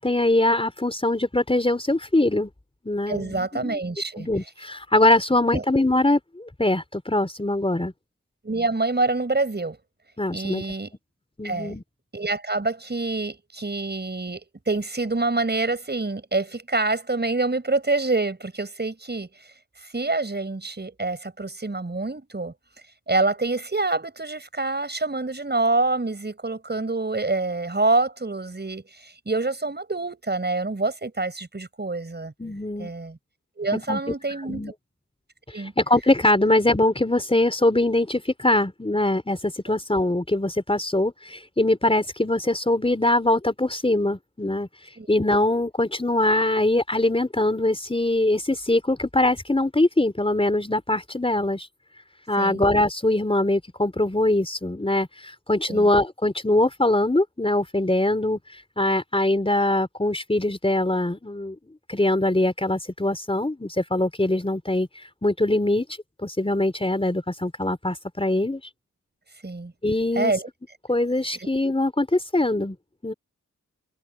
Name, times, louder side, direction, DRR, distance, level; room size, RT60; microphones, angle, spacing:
voice 1, 0.0-2.5 2.8-3.8 4.2-7.9 10.2-10.6 11.4-11.8 32.4-32.9 33.9-34.0 34.3-34.7 35.8-44.7 45.1-51.7 52.3-58.4 58.8-61.6 61.9-64.9 65.2-65.8 66.2-68.6 69.8-70.3 70.9-72.8 73.0-73.1, left 1 dB, 20° left, 4.1 m, -22 dB
voice 2, 3.1-4.3 5.5-5.6 8.4-9.8 10.3-10.9 11.4-11.8 12.1-19.5 19.8-22.5 23.1-32.3 32.8-33.2 33.6-34.6 35.5-35.7 45.0-45.1 52.4-52.6 55.7-55.9 69.4-69.7 70.2-70.5 71.3-71.5, right 3 dB, 35° right, 7.4 m, -26 dB
cardioid pair, 60°, 30 cm